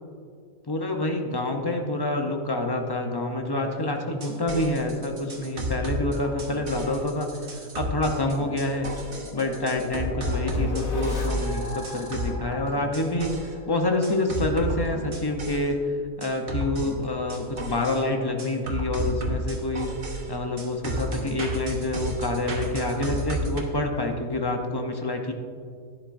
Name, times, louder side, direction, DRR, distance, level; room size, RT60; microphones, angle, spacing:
voice 1, 0.7-8.9 9.3-13.3 13.7-19.9 20.3-25.3, left 2 dB, 30° left, 3 dB, 0.5 m, -27 dB
sound 1, 4.1-13.5 14.0-15.7 16.2-18.0 18.4-23.6, right 1 dB, 45° right, 1.1 m, -32 dB
sound 2, 7.3-14.1, left 3 dB, 80° left, 1.5 m, -34 dB
11.5 x 9.9 x 2.6 m, 2.2 s
omnidirectional pair, 1.4 m